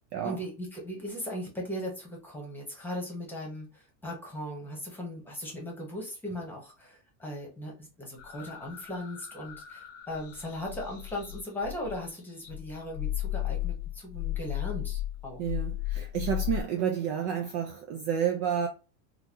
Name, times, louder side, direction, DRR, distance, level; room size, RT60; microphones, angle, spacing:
voice 1, 0.2-15.4, left 1 dB, 5° left, 1.0 m, -38 dB
sound 1, 8.2-12.1 12.4-16.6, left 14 dB, 35° left, 0.7 m, -35 dB
voice 2, 15.4-18.7, right 8 dB, 40° right, 0.4 m, -30 dB
3.9 x 2.3 x 2.8 m
supercardioid pair, 160°, 41 cm